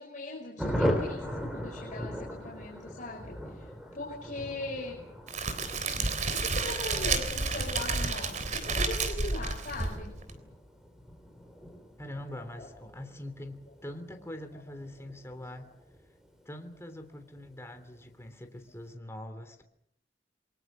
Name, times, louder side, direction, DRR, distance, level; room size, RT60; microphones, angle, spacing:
voice 1, 0.0-5.0 6.3-10.2 12.3-12.9 14.5-14.6 15.0-15.1, left 2 dB, 45° left, -2 dB, 5.3 m, -40 dB
Thunder, 0.6-16.7 17.0-17.1 17.4-17.5 17.8-18.2, equal, 5° right, 5.3 m, -39 dB
Crackle, 5.3-10.3, right 3 dB, 45° right, 3.5 m, -31 dB
voice 2, 12.0-15.7 16.4-19.6, left 1 dB, 15° left, 6 dB, 3.1 m, -43 dB
29.0 x 23.5 x 6.3 m, 0.71 s
head